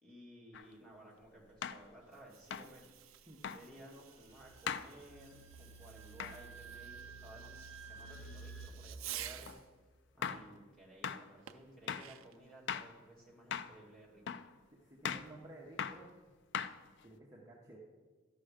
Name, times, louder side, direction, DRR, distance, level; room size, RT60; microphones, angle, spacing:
voice 1, 0.0-9.5 10.1-14.4, right 1 dB, 5° left, -4 dB, 2.1 m, -57 dB
sound 1, 0.5-0.7 1.6-1.9 2.5-2.7 3.4-3.6 4.7-4.9 6.2-6.4 9.5-9.6 10.2-10.5 11.0-11.2 11.9-12.1 12.7-12.9 13.5-13.8 14.3-14.5 15.0-15.3 15.8-16.0 16.5-17.0, left 7 dB, 60° left, 0.4 m, -39 dB
Fireworks, 2.0-9.7 11.5-12.5, right 12 dB, 85° right, 0.5 m, -52 dB
sound 2, 4.3-8.7, right 4 dB, 80° left, 1.8 m, -52 dB
voice 2, 15.0-16.1 17.0-17.8, right 1 dB, 15° right, -4 dB, 1.0 m, -54 dB
12.5 x 5.7 x 5.0 m, 1.4 s
head